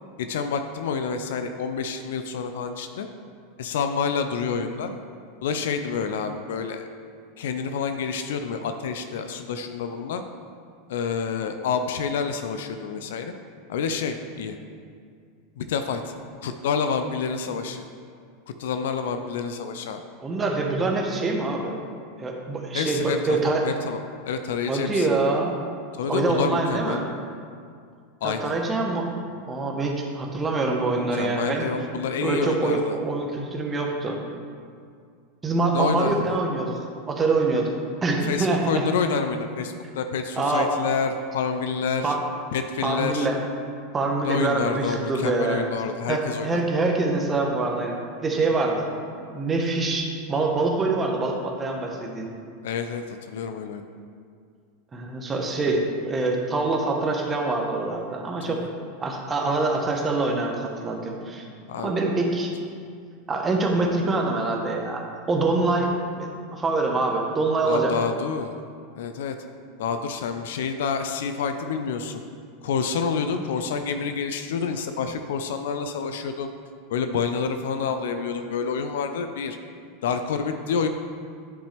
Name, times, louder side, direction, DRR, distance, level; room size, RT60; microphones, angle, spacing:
voice 1, 0.2-3.1 3.6-4.9 5.4-6.9 7.4-10.2 10.9-13.3 13.7-14.6 15.6-16.0 16.4-17.8 18.6-20.0 22.7-24.0 24.2-25.1 26.0-27.0 28.2-28.5 31.1-33.0 35.7-36.4 38.1-42.1 42.5-43.3 44.2-46.6 52.6-53.8 58.4-58.7 61.7-61.9 67.6-68.6 69.0-69.4 69.8-72.2 72.6-76.5 76.9-79.6 80.0-80.9, left 6 dB, 70° left, 7 dB, 0.4 m, -28 dB
voice 2, 20.2-21.7 22.2-23.6 24.7-25.6 26.1-27.0 28.2-29.1 29.5-31.7 32.2-34.2 35.4-37.7 38.0-38.9 40.4-40.7 42.0-42.2 42.8-43.4 43.9-45.6 46.1-48.9 49.3-52.3 54.9-58.6 59.0-61.4 61.8-62.5 63.3-67.9, right 3 dB, 25° right, 1 dB, 1.1 m, -25 dB
10.0 x 5.3 x 3.3 m, 2.2 s
hypercardioid pair, 95°, 0 cm